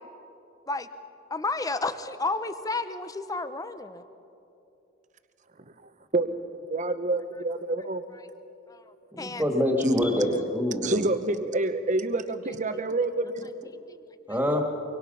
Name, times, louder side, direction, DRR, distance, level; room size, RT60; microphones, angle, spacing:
voice 1, 1.3-4.0 8.7-9.4 13.9-14.0 14.3-14.4, left 3 dB, 20° left, 11 dB, 0.8 m, -32 dB
voice 2, 6.7-8.0 10.8-13.5, right 2 dB, 40° right, 10 dB, 0.9 m, -27 dB
voice 3, 9.2-11.0 14.3-14.6, left 1 dB, 10° right, 2 dB, 2.2 m, -25 dB
24.0 x 24.0 x 5.7 m, 2.9 s
head